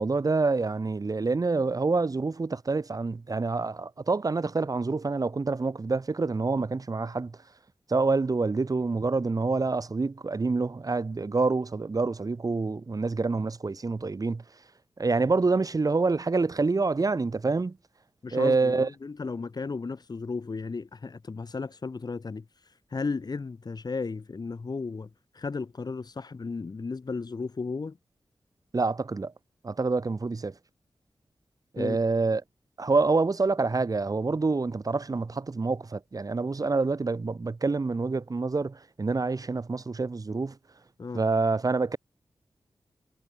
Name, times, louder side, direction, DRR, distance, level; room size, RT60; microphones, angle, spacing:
voice 1, 0.0-7.4 7.9-14.4 15.0-17.8 18.3-18.9 28.7-29.3 29.6-30.5 31.7-32.4 32.8-40.6 41.1-42.0, right 3 dB, 45° right, 2.8 m, -27 dB
voice 2, 18.2-28.0 31.8-32.0 41.0-41.2, left 4 dB, 55° left, 3.3 m, -35 dB
cardioid pair, 55°, 8 cm